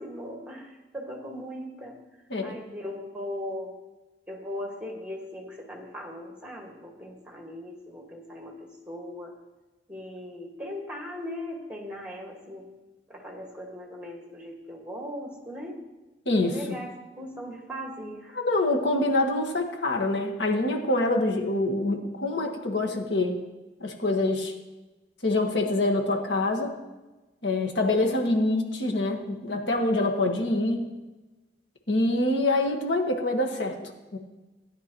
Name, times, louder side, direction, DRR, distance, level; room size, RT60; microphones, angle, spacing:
voice 1, 0.0-2.0 2.4-3.8 4.3-9.3 9.9-12.7 13.1-15.8 16.3-18.4, left 1 dB, 5° right, 0 dB, 1.9 m, -39 dB
voice 2, 16.3-16.8 18.4-23.4 23.8-24.5 25.2-26.7 27.4-30.9 31.9-34.2, left 2 dB, 85° left, 2 dB, 1.6 m, -25 dB
16.5 x 10.5 x 3.1 m, 1.1 s
head